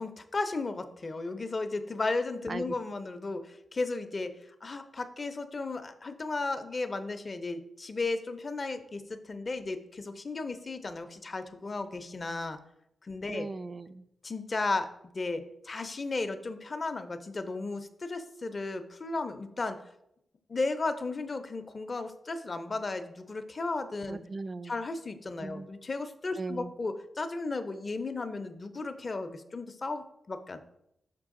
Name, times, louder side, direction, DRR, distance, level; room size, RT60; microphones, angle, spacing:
voice 1, 0.0-4.3 4.6-12.6 13.0-13.5 14.2-14.9 15.1-19.8 20.5-24.2 24.6-30.6, left 3 dB, 40° left, 9 dB, 0.5 m, -34 dB
voice 2, 13.3-14.1 24.1-24.8 25.4-25.7 26.4-26.7, right 3 dB, 40° right, 14 dB, 0.3 m, -38 dB
5.9 x 4.6 x 3.6 m, 0.78 s
wide cardioid pair, 100°, 0 cm